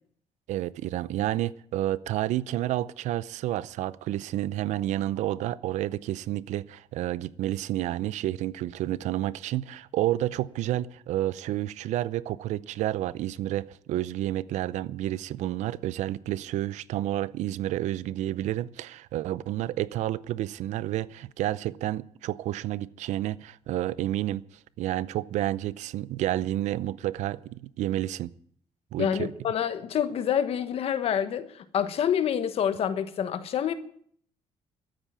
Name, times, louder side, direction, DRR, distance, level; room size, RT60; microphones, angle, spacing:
voice 1, 0.5-24.4 24.8-28.3 28.9-29.3, right 14 dB, 85° right, 0.6 m, -30 dB
voice 2, 29.0-33.7, left 9 dB, 55° left, 1.3 m, -27 dB
13.0 x 9.2 x 9.9 m
cardioid pair, 140°, 12 cm